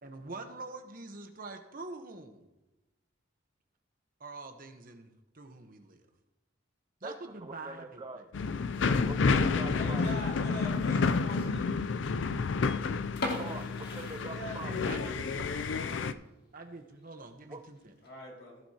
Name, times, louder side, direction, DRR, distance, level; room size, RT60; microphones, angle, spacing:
voice 1, 0.0-2.4 4.2-6.0 7.0-8.3 13.5-13.7 14.2-15.5 16.5-17.9, right 3 dB, 50° right, 5 dB, 1.1 m, -46 dB
voice 2, 7.4-8.3 9.0-10.0 13.3-14.7 17.5-17.6, right 2 dB, 25° right, 5 dB, 0.5 m, -43 dB
sound 1, 8.3-16.1, left 4 dB, 75° left, 0.4 m, -30 dB
voice 3, 9.8-11.7 14.2-16.0 18.0-18.6, left 1 dB, 90° left, -2 dB, 4.2 m, -44 dB
sound 2, 13.2-15.0 15.3-15.4 16.0-16.1 16.6-16.7 16.9-17.0 17.8-18.1, left 2 dB, 55° left, 2.0 m, -38 dB
15.5 x 7.7 x 2.9 m, 1.0 s
head